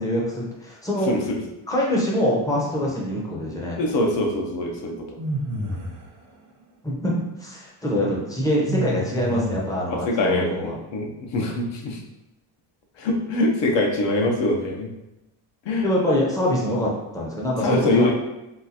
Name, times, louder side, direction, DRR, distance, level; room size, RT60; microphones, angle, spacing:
voice 1, 0.0-1.1 1.7-3.8 6.8-7.1 7.4-10.8 15.8-18.1, left 1 dB, 5° left, -4 dB, 0.6 m, -24 dB
voice 2, 1.1-1.4 3.8-5.2 9.9-12.0 13.0-14.9 15.6-15.9 17.6-18.1, left 2 dB, 60° left, 1 dB, 0.8 m, -23 dB
sound 1, 5.2-6.1 8.7-9.8, right 1 dB, 40° right, 0.6 m, -29 dB
3.8 x 2.4 x 2.7 m, 0.93 s
cardioid pair, 145°, 49 cm